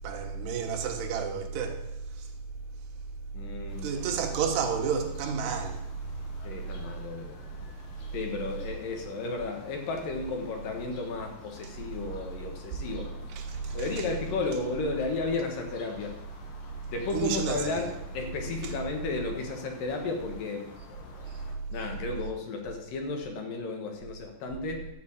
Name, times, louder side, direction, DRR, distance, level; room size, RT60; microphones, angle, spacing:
voice 1, 0.0-2.3 3.8-5.8 13.3-14.1 17.1-17.8 18.6-18.7 21.3-21.4, right 6 dB, 85° right, 3.5 m, -31 dB
voice 2, 3.3-4.0 6.4-7.7 8.1-13.1 13.7-16.2 16.9-20.7 21.7-24.9, left 3 dB, 65° left, 2.8 m, -33 dB
sound 1, 3.7-21.6, left 4 dB, 85° left, 4.0 m, -50 dB
12.5 x 5.4 x 8.5 m
omnidirectional pair, 4.6 m